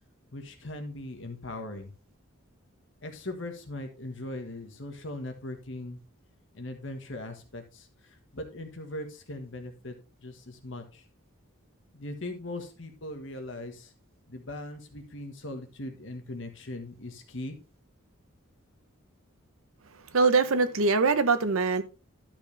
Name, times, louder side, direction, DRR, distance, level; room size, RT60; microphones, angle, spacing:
voice 1, 0.3-1.9 3.0-6.0 6.5-9.9 10.2-11.0 11.9-13.9 14.3-17.6, left 1 dB, 60° left, 1.6 m, -39 dB
voice 2, 19.9-21.8, right 4 dB, 75° right, 0.9 m, -23 dB
12.0 x 5.9 x 3.4 m
head